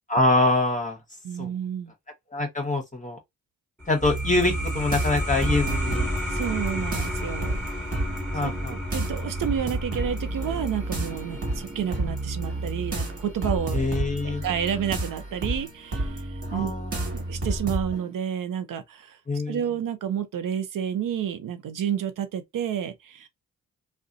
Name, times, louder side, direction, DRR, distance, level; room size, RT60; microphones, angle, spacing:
voice 1, 0.1-1.0 1.4-1.5 2.3-3.2 3.9-6.1 6.9-7.0 8.3-8.7 13.7-14.4 16.5-17.2 19.3-19.6, left 2 dB, 20° left, 0.9 m, -25 dB
voice 2, 1.2-1.9 6.3-7.6 8.4-13.9 14.2-16.7 17.0-19.2 19.5-23.3, right 9 dB, 60° right, 0.6 m, -30 dB
sound 1, 3.8-15.0, left 1 dB, 5° left, 1.2 m, -33 dB
sound 2, 4.0-18.1, right 2 dB, 40° right, 1.1 m, -31 dB
2.4 x 2.2 x 2.6 m
supercardioid pair, 40°, 36 cm